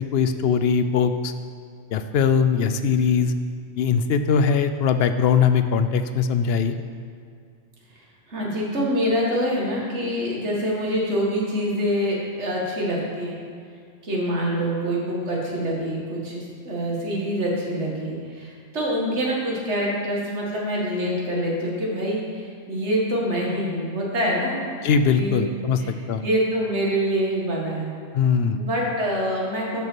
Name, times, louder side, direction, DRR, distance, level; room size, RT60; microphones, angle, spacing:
voice 1, 0.0-1.3 1.9-3.3 3.8-6.8 24.8-25.8 26.1-26.2 28.1-28.6, left 6 dB, 65° left, 9 dB, 0.7 m, -21 dB
voice 2, 8.3-13.3 14.0-24.6 25.1-25.5 25.8-25.9 26.2-27.9 28.5-29.8, equal, 65° right, -3 dB, 2.0 m, -25 dB
12.0 x 5.3 x 4.5 m, 2.2 s
omnidirectional pair, 1.3 m